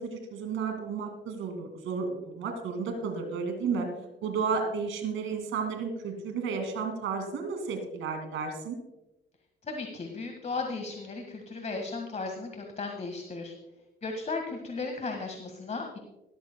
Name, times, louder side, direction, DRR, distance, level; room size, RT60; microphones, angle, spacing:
voice 1, 0.0-3.9 4.2-8.8, right 5 dB, 85° right, 5 dB, 2.4 m, -32 dB
voice 2, 9.7-13.5 14.0-16.0, left 3 dB, 35° left, 4 dB, 1.8 m, -35 dB
18.0 x 13.5 x 2.3 m, 0.97 s
cardioid pair, 90°, 20 cm